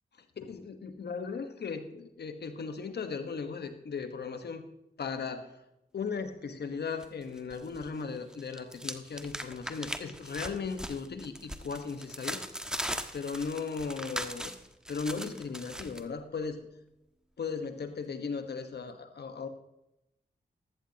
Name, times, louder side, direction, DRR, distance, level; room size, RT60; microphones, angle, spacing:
voice 1, 0.4-4.7 5.0-5.5 5.9-12.5 13.1-14.5 14.9-16.6 17.4-19.5, left 5 dB, 70° left, 8 dB, 1.3 m, -37 dB
sound 1, 7.0-7.9 8.2-16.0, equal, 5° right, 1.2 m, -39 dB
14.0 x 12.5 x 3.0 m, 0.89 s
supercardioid pair, 40°, 18 cm